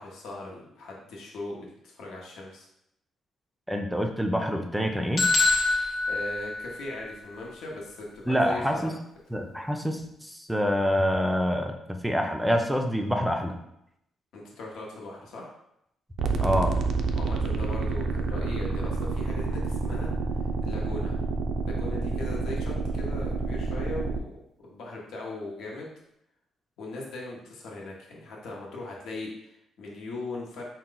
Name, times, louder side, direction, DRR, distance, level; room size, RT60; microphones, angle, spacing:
voice 1, 0.0-2.7 6.1-8.9 14.3-15.5 17.1-20.1 20.6-21.2 21.7-24.3 24.6-25.9 26.8-30.6, left 2 dB, 75° left, -2 dB, 0.9 m, -39 dB
voice 2, 3.7-5.3 8.3-9.0 9.3-13.6 16.4-16.8, equal, 5° right, 4 dB, 0.5 m, -26 dB
sound 1, 5.2-7.1, left 3 dB, 50° left, 0.8 m, -25 dB
sound 2, 16.2-24.2, right 3 dB, 70° right, 0.4 m, -28 dB
4.3 x 2.2 x 3.8 m, 0.78 s
cardioid pair, 90°, 0 cm